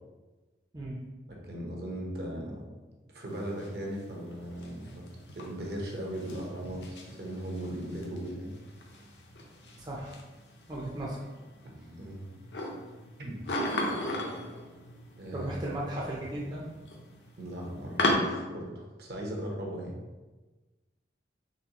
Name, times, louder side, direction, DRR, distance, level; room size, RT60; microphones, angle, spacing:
voice 1, 1.3-2.6 3.1-5.0 5.3-8.5 11.6-12.2 13.2-13.4 15.2-15.5 17.4-20.0, right 1 dB, 60° right, -1 dB, 0.8 m, -38 dB
sound 1, 3.3-18.1, left 1 dB, 75° left, 0.7 m, -38 dB
voice 2, 9.8-10.2 10.7-11.3 15.3-16.6, right 1 dB, 25° right, -4 dB, 0.5 m, -36 dB
4.1 x 3.2 x 2.9 m, 1.2 s
head